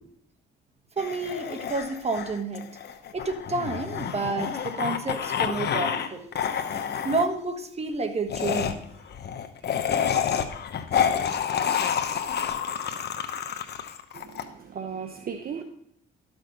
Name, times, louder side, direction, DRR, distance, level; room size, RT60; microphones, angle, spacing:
sound 1, 1.0-6.1 6.3-7.3 8.3-14.4, left 8 dB, 55° left, 1.0 m, -29 dB
voice 1, 1.0-2.7 3.1-6.2 7.0-8.8 15.4-15.6, right 3 dB, 30° right, 7 dB, 1.4 m, -30 dB
voice 2, 14.1-15.6, right 7 dB, 50° right, 5 dB, 1.0 m, -36 dB
12.5 x 6.4 x 5.2 m, 0.72 s
cardioid pair, 90°, 20 cm